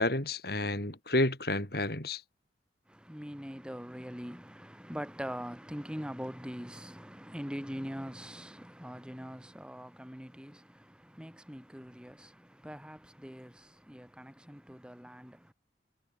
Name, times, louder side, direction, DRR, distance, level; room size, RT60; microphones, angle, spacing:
voice 1, 0.0-2.2, left 2 dB, 55° left, 4.3 m, -30 dB
voice 2, 2.9-15.5, equal, 5° right, 6.3 m, -43 dB
head